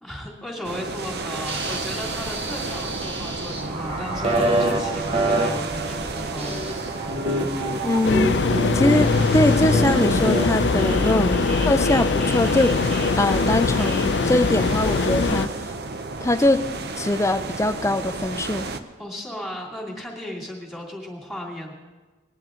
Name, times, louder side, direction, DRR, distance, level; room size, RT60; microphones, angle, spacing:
voice 1, 0.0-6.6 19.0-21.7, left 1 dB, ahead, -3 dB, 2.6 m, -35 dB
sound 1, 0.6-18.8, right 3 dB, 60° right, 0.8 m, -32 dB
sound 2, 1.5-14.1, right 1 dB, 35° right, 1.2 m, -28 dB
voice 2, 7.8-8.3 8.7-11.4 11.7-12.7 13.2-15.5 16.2-16.6 17.0-18.7, left 1 dB, 15° left, 11 dB, 0.5 m, -22 dB
sound 3, 8.0-15.5, left 4 dB, 70° left, 0.5 m, -22 dB
20.5 x 10.5 x 3.8 m, 1.3 s
head